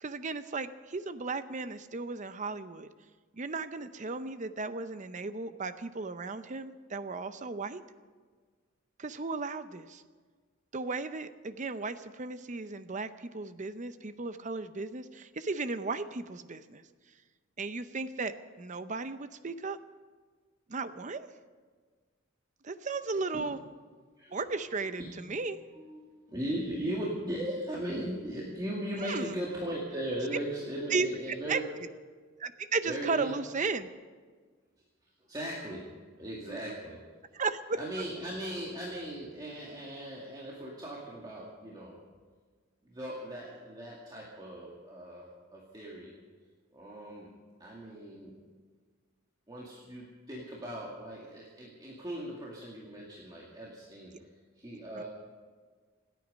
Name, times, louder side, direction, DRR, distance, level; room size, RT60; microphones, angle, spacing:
voice 1, 0.0-2.9 3.3-7.8 9.0-10.0 10.7-16.8 17.6-19.8 20.7-21.3 22.6-23.6 24.3-25.6 29.0-29.4 30.9-31.6 32.4-33.9 36.5-36.8 37.3-38.1 55.0-55.1, right 4 dB, 35° right, 12 dB, 0.6 m, -35 dB
voice 2, 24.2-25.1 25.7-31.6 32.9-33.3 35.3-37.0 37.8-41.9 42.8-46.1 46.7-47.3 47.6-48.4 49.5-54.3 54.6-55.0, right 1 dB, 20° right, -5 dB, 2.1 m, -38 dB
27.0 x 9.3 x 5.3 m, 1.5 s
head